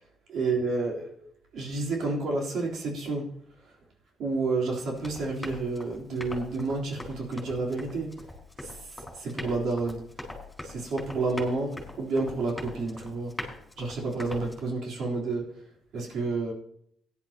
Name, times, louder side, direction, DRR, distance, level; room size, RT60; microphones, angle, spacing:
voice 1, 0.3-1.3 1.5-3.3 4.2-8.2 8.6-8.8 9.1-10.0 10.6-13.3 13.8-15.5 15.9-16.5, right 3 dB, 70° right, -2 dB, 3.6 m, -30 dB
Run, 4.9-14.6, left 2 dB, 10° left, 4.5 m, -42 dB
17.0 x 11.0 x 2.9 m, 0.70 s
cardioid pair, 90°, 0 cm